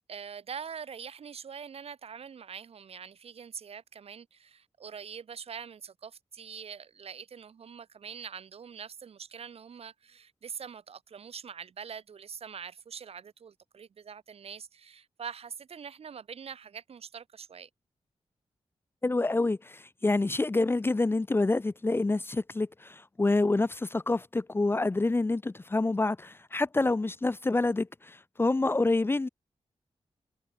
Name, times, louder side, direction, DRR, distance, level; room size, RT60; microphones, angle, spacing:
voice 1, 0.1-17.7, right 7 dB, 70° right, 1.1 m, -44 dB
voice 2, 19.0-29.3, left 2 dB, 20° left, 0.6 m, -27 dB
wide cardioid pair, 125°, 11 cm